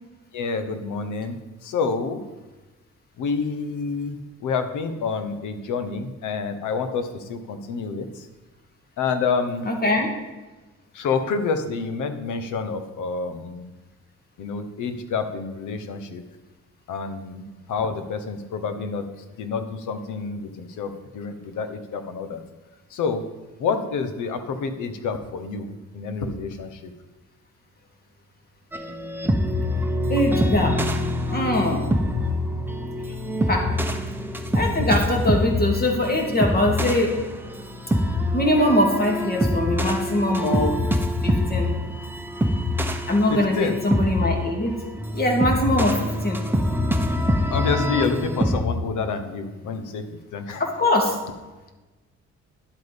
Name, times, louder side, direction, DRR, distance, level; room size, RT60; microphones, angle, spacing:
voice 1, 0.3-1.4 1.6-2.2 3.2-8.3 9.0-9.7 10.9-13.7 14.4-16.2 16.9-19.0 19.4-22.4 22.9-23.2 23.6-26.9 43.3-43.8 47.5-50.8, left 5 dB, 80° left, 9 dB, 1.2 m, -28 dB
voice 2, 9.7-10.1 30.1-30.8 31.3-31.8 33.5-33.7 34.5-37.2 38.3-40.8 41.2-41.7 43.1-44.8 45.1-46.4 50.6-51.2, left 1 dB, 30° left, 1 dB, 2.7 m, -22 dB
sound 1, 28.7-48.6, left 1 dB, 5° right, 1.0 m, -25 dB
10.5 x 8.1 x 5.3 m, 1.2 s
cardioid pair, 90°, 30 cm